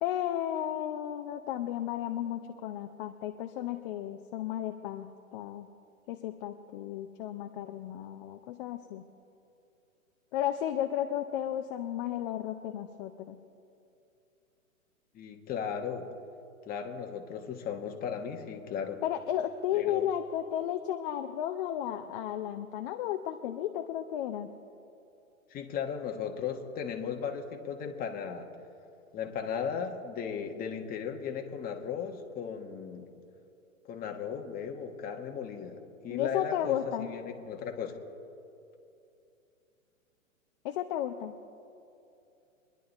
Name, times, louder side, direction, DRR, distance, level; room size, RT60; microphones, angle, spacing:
voice 1, 0.0-5.7 6.1-9.0 10.3-13.4 19.0-24.5 36.1-37.1 40.6-41.3, left 11 dB, 40° left, 6 dB, 0.7 m, -33 dB
voice 2, 15.1-16.1 16.7-19.0 19.7-20.1 25.5-28.5 29.1-33.1 33.9-38.0, left 7 dB, 20° left, 4 dB, 1.3 m, -36 dB
24.5 x 10.5 x 4.1 m, 2.7 s
hypercardioid pair, 120°, 42 cm